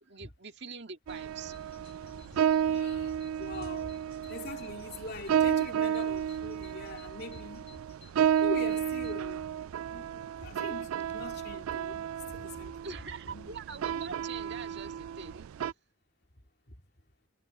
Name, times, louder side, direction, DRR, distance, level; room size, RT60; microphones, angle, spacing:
voice 1, 0.0-1.5 12.8-15.7, right 5 dB, 55° right, 2.0 m, -44 dB
Bird vocalization bird call bird song, 1.1-11.3, left 6 dB, 30° left, 6.6 m, -61 dB
sound 1, 1.1-15.7, right 9 dB, 80° right, 0.3 m, -32 dB
voice 2, 2.0-7.8 8.4-9.5 9.9-12.9 13.3-13.5 16.7-16.8, left 2 dB, 50° left, 2.9 m, -43 dB
head